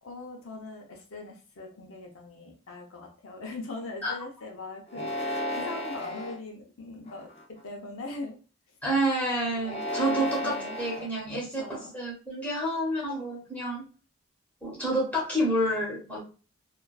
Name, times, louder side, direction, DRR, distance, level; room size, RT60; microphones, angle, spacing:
voice 1, 0.0-8.4 10.4-10.8 11.3-12.0, left 3 dB, 75° left, 1 dB, 0.6 m, -41 dB
sound 1, 4.9-6.4 7.1-7.6 9.6-11.1, left 1 dB, 30° left, 0.4 m, -33 dB
voice 2, 8.8-11.6 11.9-13.8 14.6-16.2, right 1 dB, 5° left, -5 dB, 0.9 m, -29 dB
2.4 x 2.2 x 2.3 m, 0.36 s
head